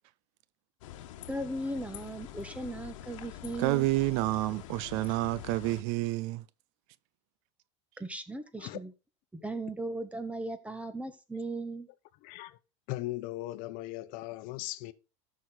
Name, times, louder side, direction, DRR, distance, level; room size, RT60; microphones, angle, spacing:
sound 1, 0.8-5.8, left 12 dB, 80° left, 1.2 m, -45 dB
voice 1, 1.3-3.9 8.0-8.9 9.3-11.9, right 2 dB, 10° right, 1.4 m, -37 dB
voice 2, 3.6-6.4, right 18 dB, 65° right, 0.5 m, -29 dB
voice 3, 12.2-12.6 12.9-14.9, left 18 dB, 60° left, 0.9 m, -38 dB
14.0 x 6.2 x 4.0 m
supercardioid pair, 115°, 16 cm